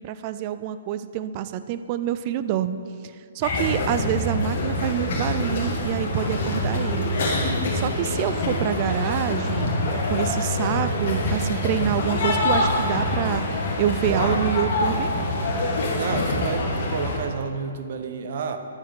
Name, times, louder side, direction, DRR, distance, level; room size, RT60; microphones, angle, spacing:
voice 1, 0.0-2.8 3.3-7.2 7.7-15.1, right 10 dB, 35° right, 12 dB, 0.4 m, -27 dB
sound 1, 3.4-17.2, left 1 dB, 50° left, 1.7 m, -25 dB
voice 2, 3.6-4.0 6.6-6.9 14.0-14.4 15.9-18.6, right 5 dB, 50° right, 8 dB, 0.8 m, -31 dB
10.0 x 9.8 x 3.7 m, 2.3 s
figure-of-eight pair, 125°, 0 cm